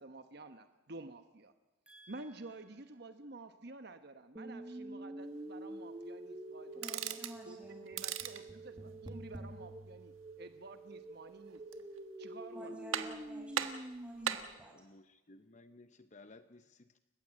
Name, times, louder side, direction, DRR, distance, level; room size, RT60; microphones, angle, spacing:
voice 1, 0.0-1.5 2.1-7.2 7.5-11.6 12.2-12.8, right 2 dB, 55° right, 9 dB, 1.0 m, -51 dB
voice 2, 1.9-2.3 6.7-7.8 12.5-14.7, equal, 5° right, 0 dB, 5.5 m, -52 dB
sound 1, 4.4-14.4, right 1 dB, 20° right, 1.3 m, -47 dB
sound 2, 6.7-7.4 7.9-8.5 11.5-12.0 12.4-12.5 12.9-13.3 13.5-14.5, right 9 dB, 90° right, 1.4 m, -38 dB
voice 3, 14.7-17.0, left 2 dB, 35° left, 10 dB, 0.8 m, -58 dB
29.0 x 15.0 x 8.7 m, 1.0 s
head